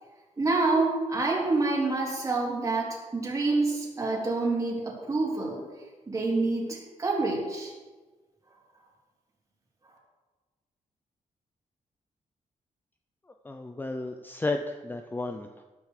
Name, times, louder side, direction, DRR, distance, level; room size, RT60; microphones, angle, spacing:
voice 1, 0.4-5.7 6.1-7.7, right 3 dB, 25° right, -3 dB, 3.7 m, -27 dB
voice 2, 13.4-15.6, left 2 dB, 15° left, 6 dB, 0.6 m, -33 dB
13.0 x 11.0 x 4.9 m, 1.3 s
wide cardioid pair, 140°, 13 cm